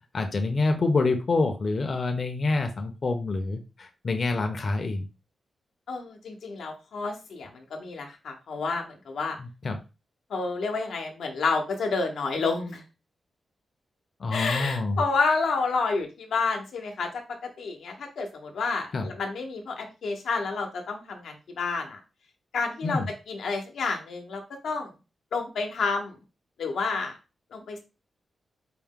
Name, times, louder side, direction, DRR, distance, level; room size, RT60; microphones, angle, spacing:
voice 1, 0.1-5.0 9.4-9.8 14.2-15.0 18.9-19.1 22.8-23.1, left 3 dB, 45° left, 5 dB, 0.6 m, -27 dB
voice 2, 5.9-9.4 10.3-12.8 14.3-17.1 17.6-22.0 22.5-23.0 23.3-24.9 25.3-26.1 26.6-27.1 27.5-27.8, left 4 dB, 90° left, 3 dB, 0.8 m, -29 dB
4.5 x 2.1 x 3.6 m, 0.30 s
wide cardioid pair, 125°, 0 cm